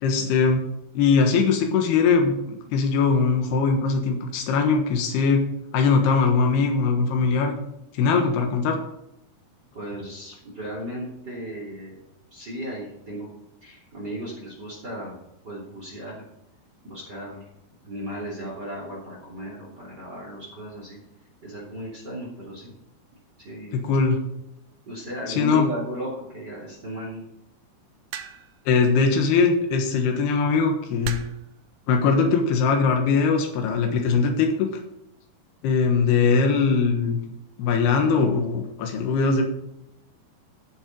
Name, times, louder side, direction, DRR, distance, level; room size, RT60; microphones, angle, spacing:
voice 1, 0.0-0.7 1.0-5.5 5.7-7.6 7.9-8.8 23.7-24.2 25.3-25.7 28.7-31.2 31.9-34.7 35.6-37.2 37.6-39.4, left 5 dB, 85° left, 3 dB, 3.4 m, -21 dB
voice 2, 9.7-12.0 12.3-13.3 13.6-15.1 15.4-16.2 16.8-17.5 17.8-21.0 21.4-22.7 23.4-23.9 24.9-27.2, equal, 30° right, -3 dB, 3.3 m, -35 dB
sound 1, 28.1-28.6 29.9-30.1 31.0-31.5 32.5-32.8, right 8 dB, 75° right, 2.5 m, -36 dB
13.0 x 7.6 x 5.3 m, 0.83 s
omnidirectional pair, 4.5 m